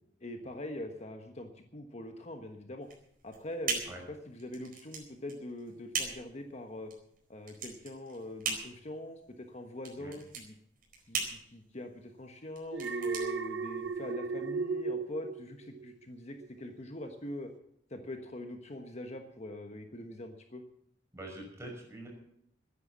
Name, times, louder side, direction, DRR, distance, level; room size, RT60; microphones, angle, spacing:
voice 1, 0.2-2.9 3.2-6.9 7.3-10.5 11.1-17.5 17.9-20.6, left 1 dB, 40° left, 5 dB, 1.3 m, -43 dB
sound 1, 2.8-14.1, right 5 dB, 55° right, 4.5 m, -40 dB
Alarm, 12.7-16.0 16.4-16.8, right 4 dB, 75° right, 0.7 m, -35 dB
voice 2, 21.1-22.1, right 1 dB, 15° right, 0 dB, 5.9 m, -44 dB
14.5 x 10.0 x 7.3 m, 0.73 s
head